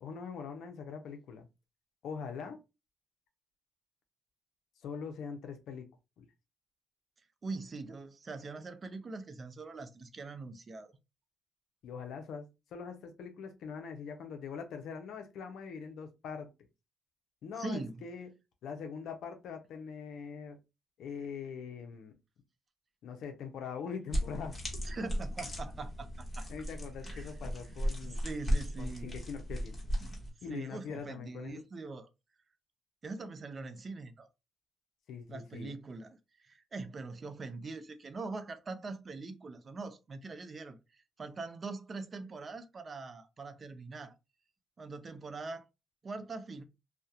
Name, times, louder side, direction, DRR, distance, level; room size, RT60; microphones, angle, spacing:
voice 1, 0.0-1.5 2.0-2.6 4.8-5.9 6.2-6.3 11.8-16.5 17.4-18.3 18.6-20.6 21.0-22.1 23.0-24.6 26.5-28.2 28.8-29.8 30.4-31.6 35.1-35.7, left 6 dB, 75° left, 0.5 m, -42 dB
voice 2, 7.4-11.0 17.6-18.0 24.8-26.5 27.0-27.3 28.0-29.2 30.0-30.2 30.5-32.1 33.0-34.3 35.3-44.1 44.8-45.6 46.0-46.6, right 3 dB, 40° right, 0.4 m, -42 dB
sound 1, 24.1-30.3, equal, 25° left, 1.0 m, -36 dB
2.3 x 2.1 x 2.7 m
cardioid pair, 90°, 0 cm